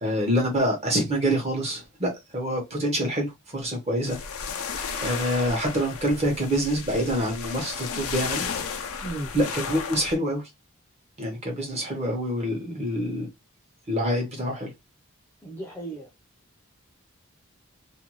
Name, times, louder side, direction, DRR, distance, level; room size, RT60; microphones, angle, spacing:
voice 1, 0.0-4.2 5.0-8.5 9.3-10.4 11.2-13.3 13.9-14.7, equal, 30° right, 0.9 m, -26 dB
sound 1, 4.1-10.2, left 6 dB, 85° left, 0.5 m, -33 dB
voice 2, 9.0-9.3 12.5-12.9 15.4-16.1, right 2 dB, 10° left, 0.5 m, -36 dB
2.5 x 2.2 x 3.0 m
head